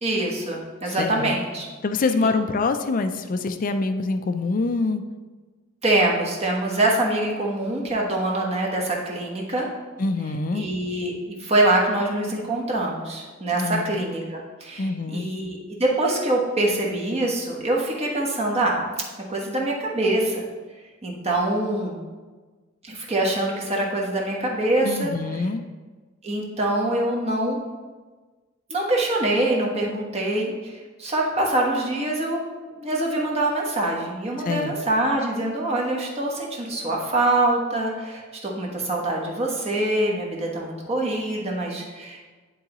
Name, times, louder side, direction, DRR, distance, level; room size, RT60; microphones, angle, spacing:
voice 1, 0.0-1.7 5.8-9.7 10.5-18.9 19.3-20.5 21.0-22.0 22.8-25.1 26.2-27.6 28.7-30.7 31.0-32.4 32.7-42.2, right 1 dB, 30° right, -2 dB, 1.2 m, -24 dB
voice 2, 0.9-1.3 1.8-5.0 10.0-10.6 13.5-14.0 14.8-15.3 24.8-25.6 34.4-34.7, left 3 dB, 45° left, 9 dB, 0.4 m, -25 dB
10.5 x 3.8 x 3.0 m, 1.4 s
head